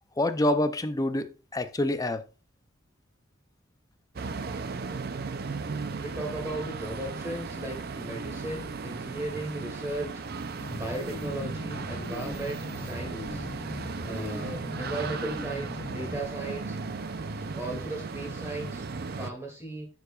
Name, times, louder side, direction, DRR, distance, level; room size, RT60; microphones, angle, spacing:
voice 1, 0.2-2.2, left 1 dB, 15° left, 0.5 m, -27 dB
sound 1, 4.2-19.3, right 4 dB, 50° right, 0.5 m, -36 dB
voice 2, 5.8-10.1 10.7-13.5 14.0-16.8 17.5-18.8 19.1-19.9, right 2 dB, 15° right, 2.3 m, -36 dB
sound 2, 10.6-16.2, left 2 dB, 35° left, 2.8 m, -40 dB
11.5 x 4.8 x 2.4 m
head